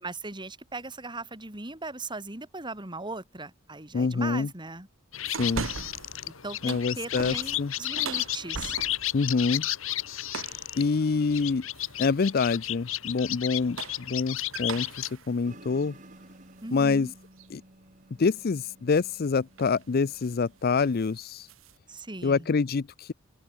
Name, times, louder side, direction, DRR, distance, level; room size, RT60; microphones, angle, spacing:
voice 1, 0.0-4.9 6.3-8.8 16.6-17.1 21.9-22.5, right 2 dB, 25° right, 3.4 m, -38 dB
voice 2, 3.9-4.5 5.4-5.7 6.6-7.7 9.1-9.7 10.8-11.7 12.0-16.0 16.7-17.1 17.5-17.6 18.2-21.5 22.2-23.1, left 4 dB, 50° left, 0.5 m, -26 dB
sound 1, 5.1-15.1, left 14 dB, 75° left, 2.0 m, -33 dB
sound 2, 5.3-6.2 6.5-9.2 10.3-10.7 11.7-12.2 13.5-16.9 17.4-17.5 19.0-19.2 19.6-19.8 20.1-20.4 20.7-21.8, right 5 dB, 70° right, 1.1 m, -40 dB
sound 3, 15.4-20.7, right 1 dB, 40° right, 5.2 m, -53 dB
open air
head